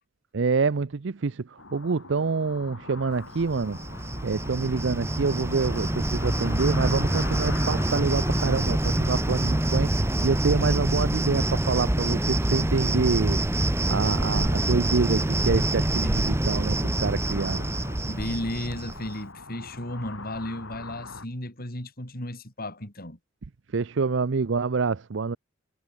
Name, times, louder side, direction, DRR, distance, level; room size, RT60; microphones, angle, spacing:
voice 1, 0.3-3.8 4.2-13.4 13.9-17.6 23.7-25.4, right 4 dB, 65° right, 0.6 m, -26 dB
sound 1, 1.6-21.3, left 3 dB, 85° left, 6.2 m, -43 dB
Cricket, 3.4-19.1, right 1 dB, 15° right, 0.8 m, -26 dB
voice 2, 18.1-23.2, left 1 dB, 50° left, 5.9 m, -34 dB
head